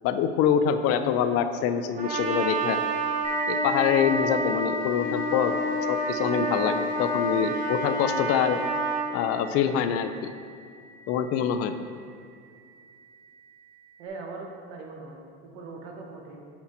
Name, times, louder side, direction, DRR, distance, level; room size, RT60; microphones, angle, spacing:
voice 1, 0.0-2.8 3.5-5.6 5.9-8.6 9.1-10.3 11.1-11.7, left 8 dB, 50° left, 10 dB, 0.4 m, -25 dB
Trumpet, 2.0-9.1, right 1 dB, 25° right, 1.0 m, -29 dB
sound 1, 3.2-12.5, right 1 dB, 10° left, 0.7 m, -38 dB
voice 2, 14.0-16.5, right 3 dB, 85° right, 1 dB, 1.1 m, -41 dB
5.9 x 4.2 x 4.2 m, 2.2 s
supercardioid pair, 115°, 31 cm